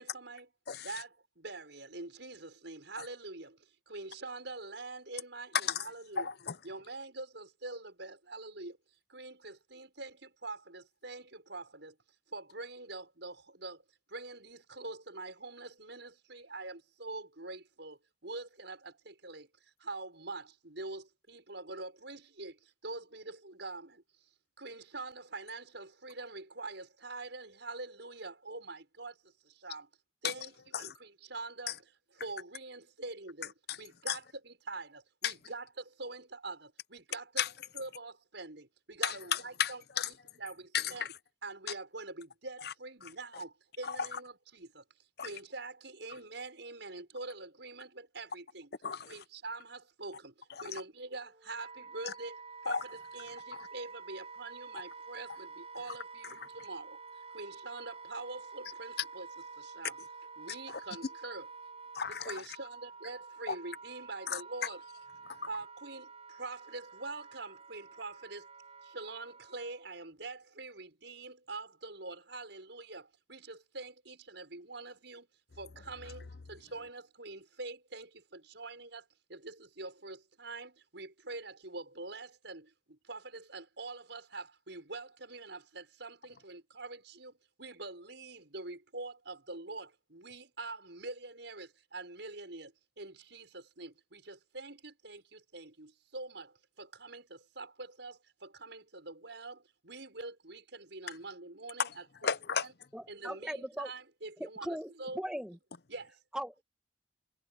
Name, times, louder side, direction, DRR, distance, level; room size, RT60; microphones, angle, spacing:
voice 1, 0.0-0.5 0.8-6.3 6.6-8.8 9.1-12.0 12.3-13.8 14.1-24.3 24.6-29.9 30.2-31.8 32.2-37.4 37.7-39.8 40.4-41.1 41.4-44.8 45.2-48.7 49.0-52.4 52.6-57.0 57.3-59.3 59.6-60.0 60.4-61.5 62.1-64.8 65.5-68.5 68.8-75.3 75.6-102.3 103.1-105.2 105.9-106.2, right 3 dB, 65° right, 6.3 m, -45 dB
voice 2, 0.7-1.0 5.6-5.9 6.2-6.6 30.2-30.3 30.7-30.9 31.7-31.8 33.7-33.8 34.1-34.2 35.2-35.3 37.4-37.5 39.0-40.1 40.7-41.1 42.6-42.7 43.8-44.2 45.2-45.3 46.1-46.2 48.8-49.2 50.5-50.8 52.0-52.1 52.7-52.8 53.6-53.7 56.4-56.5 60.7-60.8 61.9-62.5 63.5-63.6 64.3-64.7 65.3-65.4 101.8-101.9 102.2-102.7, left 7 dB, 55° left, 0.7 m, -34 dB
Wind instrument woodwind instrument, 51.0-69.8, right 4 dB, 30° right, 6.9 m, -49 dB
voice 3, 102.9-103.9 104.4-105.6 106.3-106.6, equal, 5° right, 1.8 m, -39 dB
head